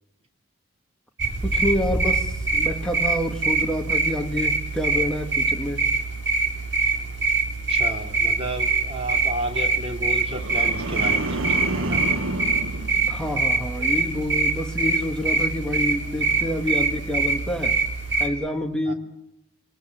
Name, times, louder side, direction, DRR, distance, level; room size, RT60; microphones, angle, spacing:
sound 1, 1.2-18.3, right 3 dB, 55° right, 4.0 m, -24 dB
voice 1, 1.4-5.8 13.1-17.8 18.2-18.9, equal, 5° left, 1.7 m, -28 dB
voice 2, 7.7-12.0 18.9-19.0, right 1 dB, 30° right, 2.7 m, -32 dB
sound 2, 10.3-13.7 14.1-14.5, right 2 dB, 85° right, 1.3 m, -30 dB
25.0 x 19.0 x 7.6 m
head